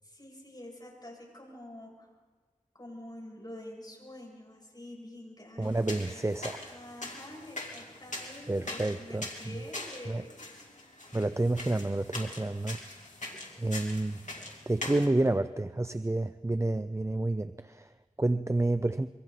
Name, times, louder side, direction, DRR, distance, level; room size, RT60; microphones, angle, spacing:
voice 1, 0.0-2.1 2.7-6.4 6.7-10.4, left 1 dB, 30° left, -2 dB, 7.9 m, -47 dB
sound 1, 5.6-15.1, left 2 dB, 70° left, 3.2 m, -42 dB
voice 2, 5.6-6.7 8.5-9.6 10.1-10.2 11.1-12.8 13.3-19.1, right 2 dB, 20° right, 11 dB, 0.5 m, -30 dB
26.5 x 24.0 x 4.1 m, 1.5 s
wide cardioid pair, 60°, 13 cm